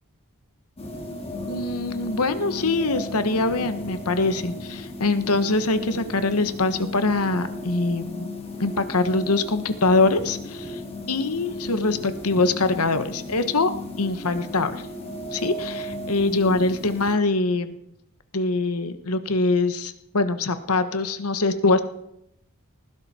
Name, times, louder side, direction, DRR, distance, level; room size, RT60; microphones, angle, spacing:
sound 1, 0.8-17.1, left 2 dB, 25° left, 2.8 m, -35 dB
voice 1, 1.5-8.3 8.6-10.8 11.1-13.7 14.0-14.7 15.3-17.8 18.3-21.8, left 3 dB, 80° left, 10 dB, 1.3 m, -23 dB
19.5 x 16.0 x 4.4 m, 0.78 s
head